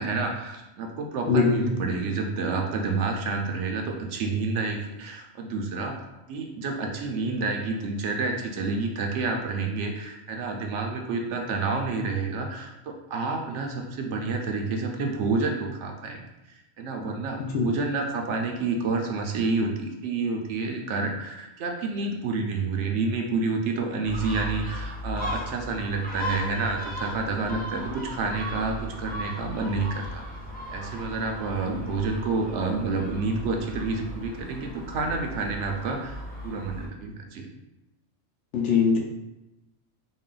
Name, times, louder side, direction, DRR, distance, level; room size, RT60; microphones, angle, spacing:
voice 1, 0.0-6.0 6.3-16.2 16.8-30.2 30.7-37.5, right 3 dB, 70° right, 2 dB, 0.8 m, -29 dB
voice 2, 1.3-1.8 17.5-17.6 38.5-39.0, left 5 dB, 70° left, 0 dB, 0.9 m, -21 dB
Gull seagull, 24.0-36.9, equal, 10° left, 0.4 m, -37 dB
4.0 x 2.2 x 3.8 m, 0.97 s
omnidirectional pair, 1.3 m